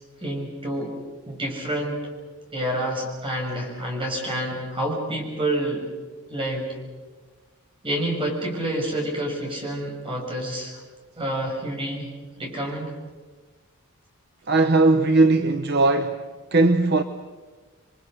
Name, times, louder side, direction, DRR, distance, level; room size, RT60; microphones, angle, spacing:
voice 1, 0.2-1.0 1.3-2.0 2.5-5.9 6.3-6.8 7.8-10.8 11.2-12.9, right 1 dB, 25° right, 6.1 m, -28 dB
voice 2, 14.5-16.2 16.5-17.0, right 2 dB, 50° right, 0.9 m, -18 dB
28.5 x 23.0 x 6.6 m
head